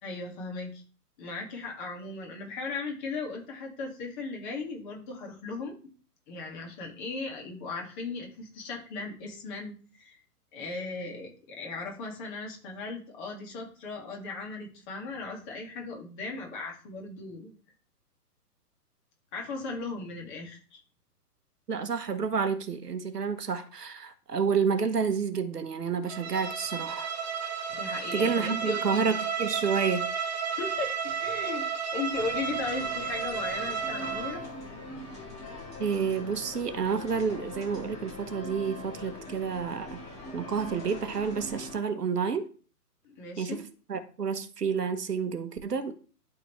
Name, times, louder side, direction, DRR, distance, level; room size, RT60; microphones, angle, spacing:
voice 1, 0.0-0.8 1.2-5.8 6.3-10.2 10.5-17.5 19.3-20.8 27.7-29.2 30.6-31.6 31.9-34.4 43.0-43.6, left 3 dB, 30° left, 2.0 m, -37 dB
voice 2, 21.7-27.1 28.1-30.1 35.8-40.0 40.3-42.5 43.4-43.6 43.9-45.9, right 6 dB, 75° right, 1.1 m, -29 dB
Bowed string instrument, 26.1-34.5, right 6 dB, 40° right, 1.1 m, -33 dB
sound 1, 32.1-41.8, left 2 dB, 15° left, 2.3 m, -42 dB
11.5 x 3.9 x 3.1 m
figure-of-eight pair, 130°, 47 cm